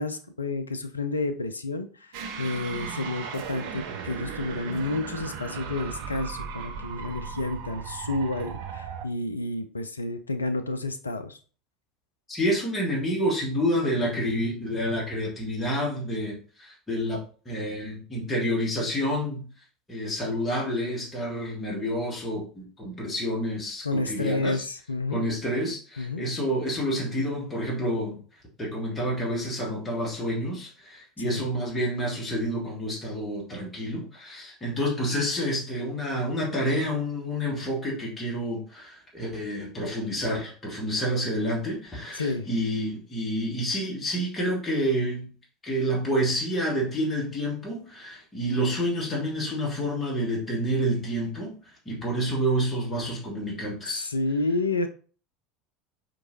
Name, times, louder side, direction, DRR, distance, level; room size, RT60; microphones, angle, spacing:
voice 1, 0.0-11.4 23.8-25.3 26.0-26.2 31.2-31.5 42.1-42.5 53.9-54.9, left 2 dB, 80° left, 8 dB, 0.4 m, -30 dB
sound 1, 2.1-9.1, right 6 dB, 55° right, 0.5 m, -37 dB
voice 2, 12.3-17.2 17.4-19.4 19.9-24.6 25.1-28.2 28.6-45.3 45.6-51.6 51.8-54.1, equal, 15° left, -4 dB, 1.6 m, -28 dB
4.7 x 2.9 x 2.7 m, 0.40 s
figure-of-eight pair, 75°, 0 cm